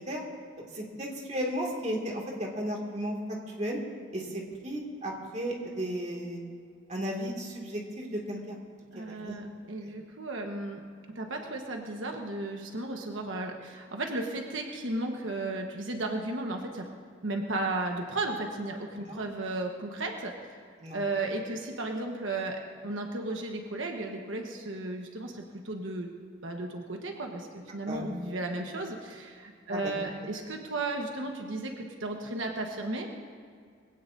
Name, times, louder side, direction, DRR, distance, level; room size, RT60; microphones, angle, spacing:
voice 1, 0.7-3.8 4.1-6.4 6.9-8.6 8.9-9.3 9.8-9.9 19.1-19.2 20.8-21.0 27.9-28.1 29.7-30.1, equal, 35° right, -1 dB, 2.2 m, -34 dB
voice 2, 8.9-10.8 11.1-16.9 17.2-20.3 20.9-26.1 26.4-33.1, right 2 dB, 85° right, 2 dB, 1.3 m, -34 dB
22.0 x 16.5 x 2.7 m, 2.1 s
head